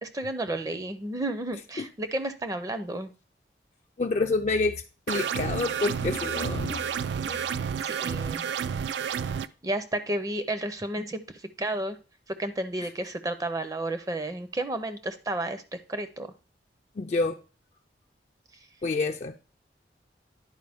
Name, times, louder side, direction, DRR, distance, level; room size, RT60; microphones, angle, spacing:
voice 1, 0.0-3.1 7.3-8.4 9.6-12.0 12.3-16.3, right 1 dB, 20° right, 0.5 m, -32 dB
voice 2, 4.0-7.0 17.0-17.4 18.8-19.4, left 3 dB, 40° left, 0.4 m, -28 dB
sound 1, 5.1-9.5, right 7 dB, 80° right, 0.3 m, -30 dB
10.5 x 4.5 x 3.4 m
head